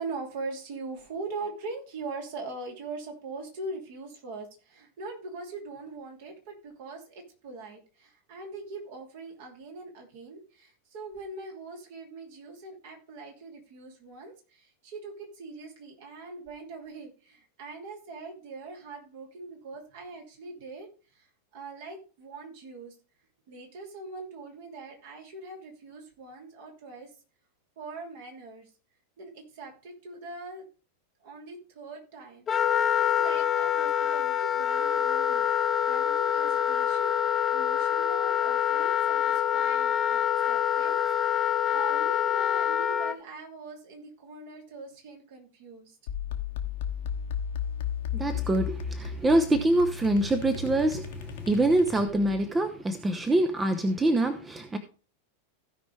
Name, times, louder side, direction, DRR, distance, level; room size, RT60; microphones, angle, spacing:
voice 1, 0.0-22.9 23.5-27.1 27.8-28.7 29.2-30.7 31.2-32.5 33.0-40.2 40.5-45.9, right 3 dB, 55° right, 1 dB, 2.9 m, -42 dB
Wind instrument woodwind instrument, 32.5-43.1, left 9 dB, 20° left, 0.6 m, -26 dB
sound 1, 46.1-52.4, left 7 dB, 55° left, 1.1 m, -34 dB
voice 2, 48.1-54.8, right 1 dB, 15° right, 7 dB, 0.9 m, -25 dB
16.0 x 5.4 x 3.4 m, 0.35 s
figure-of-eight pair, 90°, 0 cm